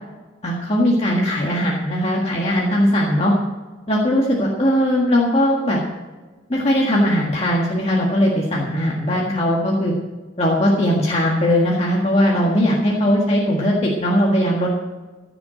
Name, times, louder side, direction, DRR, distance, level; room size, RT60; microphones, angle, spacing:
voice 1, 0.4-3.3 3.9-5.8 6.5-9.9 10.4-14.7, equal, 30° left, -3 dB, 1.8 m, -19 dB
15.5 x 7.1 x 7.8 m, 1.3 s
head